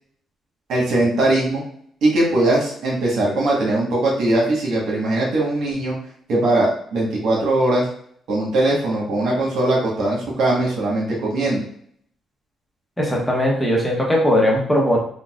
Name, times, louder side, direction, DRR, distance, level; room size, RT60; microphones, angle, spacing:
voice 1, 0.7-1.6 2.0-6.0 6.3-7.9 8.3-11.6, right 2 dB, 75° right, -3 dB, 1.3 m, -20 dB
voice 2, 13.0-15.0, equal, 10° left, -2 dB, 0.9 m, -19 dB
3.9 x 2.3 x 2.4 m, 0.62 s
cardioid pair, 90°, 0 cm